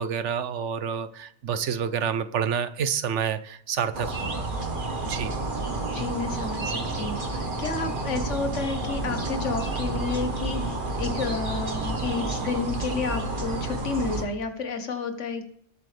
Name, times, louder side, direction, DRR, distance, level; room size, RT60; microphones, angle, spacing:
voice 1, 0.0-4.5 5.0-5.3, right 7 dB, 75° right, 12 dB, 1.1 m, -28 dB
sound 1, 3.9-14.2, right 2 dB, 45° right, 1.5 m, -30 dB
voice 2, 5.9-15.4, left 4 dB, 80° left, 7 dB, 1.6 m, -31 dB
19.0 x 7.9 x 3.4 m, 0.65 s
omnidirectional pair, 1.2 m